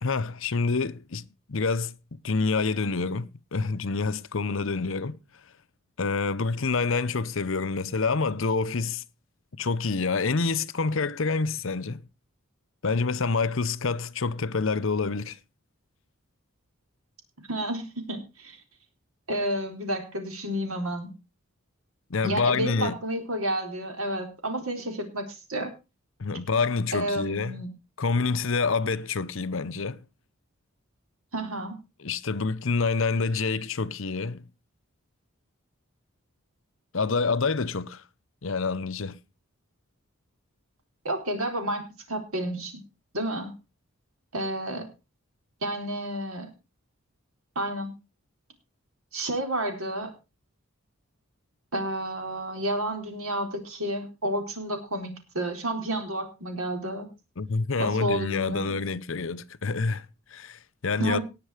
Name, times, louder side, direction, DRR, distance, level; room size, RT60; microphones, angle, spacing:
voice 1, 0.0-2.0 2.2-5.2 6.0-9.0 9.6-12.1 12.8-15.4 22.1-23.0 26.2-27.6 28.0-30.0 32.0-34.5 36.9-38.0 38.4-39.2 57.4-61.2, left 4 dB, 65° left, 0.7 m, -27 dB
voice 2, 17.5-18.6 19.3-21.1 22.2-25.7 26.9-27.7 31.3-31.8 41.0-42.8 43.1-43.5 44.3-44.9 45.6-46.5 47.6-47.9 49.1-50.1 51.7-57.1 57.8-58.7 61.0-61.2, right 1 dB, 75° right, 3.9 m, -30 dB
18.5 x 6.6 x 4.9 m
head